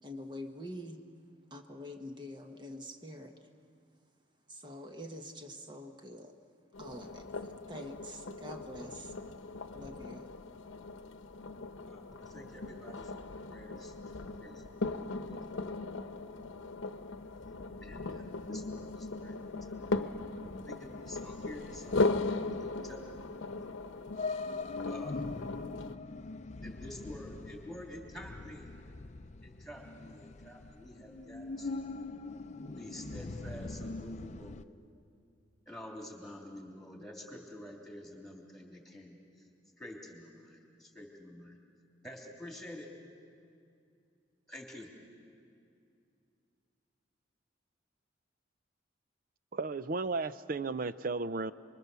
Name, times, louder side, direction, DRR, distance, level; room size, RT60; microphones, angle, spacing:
voice 1, 0.0-1.0 1.5-3.3 4.5-6.4 6.8-9.1 9.7-10.3, left 1 dB, 25° right, 5 dB, 1.2 m, -45 dB
sound 1, 6.7-26.0, left 3 dB, 90° left, 0.9 m, -38 dB
voice 2, 11.8-14.6 15.0-15.5 17.8-22.1 22.4-23.4 24.8-25.6 26.6-28.7 29.4-31.9 32.8-34.6 35.7-39.5 39.8-41.6 42.0-42.9 44.5-44.9, left 1 dB, ahead, 0 dB, 3.2 m, -49 dB
sound 2, 17.1-34.6, left 3 dB, 35° left, 0.6 m, -43 dB
voice 3, 49.5-51.5, right 3 dB, 45° right, 14 dB, 0.5 m, -34 dB
29.0 x 22.5 x 6.9 m, 2.5 s
head